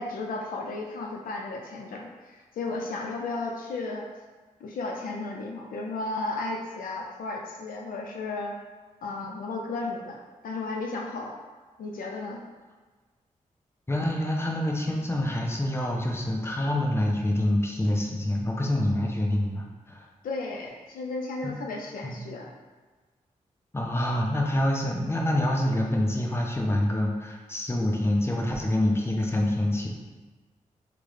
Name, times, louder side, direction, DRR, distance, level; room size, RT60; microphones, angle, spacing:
voice 1, 0.0-4.1 4.6-8.6 9.0-11.3 11.8-12.4 20.2-22.5, left 3 dB, 75° left, 0 dB, 0.4 m, -34 dB
voice 2, 13.9-20.1 21.4-21.5 22.0-22.2 23.7-29.9, left 1 dB, 15° left, 0 dB, 0.6 m, -26 dB
3.5 x 2.1 x 3.1 m, 1.3 s
supercardioid pair, 45°, 15 cm